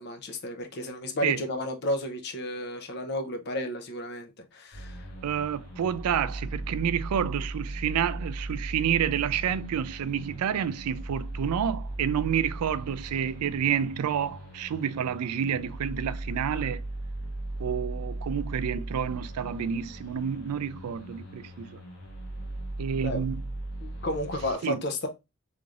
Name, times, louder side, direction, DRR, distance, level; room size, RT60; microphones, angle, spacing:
voice 1, 0.0-5.1 23.0-23.2 23.8-25.1, left 1 dB, 50° left, 0.7 m, -32 dB
sound 1, 4.7-24.5, right 1 dB, 85° left, 1.3 m, -38 dB
voice 2, 5.2-16.8 17.6-21.7 22.8-23.4 24.6-24.8, right 8 dB, 90° right, 0.4 m, -29 dB
3.5 x 3.2 x 2.4 m
head